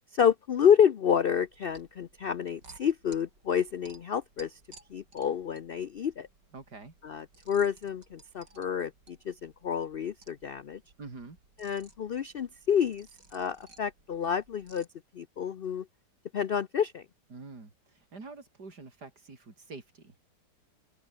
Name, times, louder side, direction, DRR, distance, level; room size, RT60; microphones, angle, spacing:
voice 1, 0.1-4.6 4.9-6.3 7.0-10.8 11.6-13.1 13.3-14.9 15.1-15.9 16.3-17.0, left 8 dB, 75° left, 0.5 m, -28 dB
sound 1, 1.3-14.9, right 3 dB, 90° right, 5.5 m, -58 dB
voice 2, 6.5-6.9 11.0-11.4 17.3-20.2, right 3 dB, 70° right, 4.4 m, -46 dB
omnidirectional pair, 1.8 m